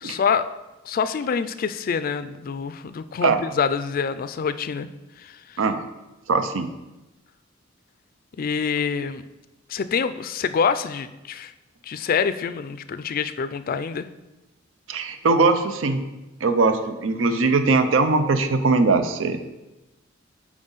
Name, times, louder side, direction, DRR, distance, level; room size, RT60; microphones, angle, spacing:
voice 1, 0.0-0.5 0.9-4.9 5.2-5.4 8.4-9.2 9.7-11.5 11.8-14.1, left 6 dB, 45° left, 12 dB, 0.4 m, -26 dB
voice 2, 6.3-6.7 14.9-16.0 16.4-19.4, right 3 dB, 85° right, 9 dB, 0.6 m, -20 dB
7.3 x 4.9 x 4.0 m, 1.0 s
head